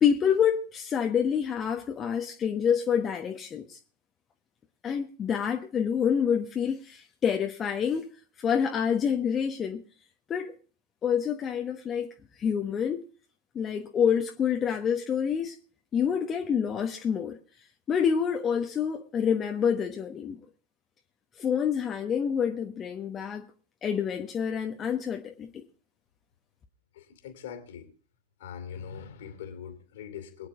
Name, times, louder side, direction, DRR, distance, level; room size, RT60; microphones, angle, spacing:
voice 1, 0.0-3.8 4.8-8.1 8.4-9.8 10.3-10.5 11.0-12.1 12.4-13.0 13.5-15.6 15.9-17.4 17.9-20.4 21.4-23.5 23.8-25.5, left 7 dB, 25° left, 1.2 m, -27 dB
voice 2, 26.9-27.9 28.4-30.5, left 8 dB, 55° left, 2.6 m, -42 dB
23.0 x 9.7 x 3.6 m
figure-of-eight pair, 90°, 0 cm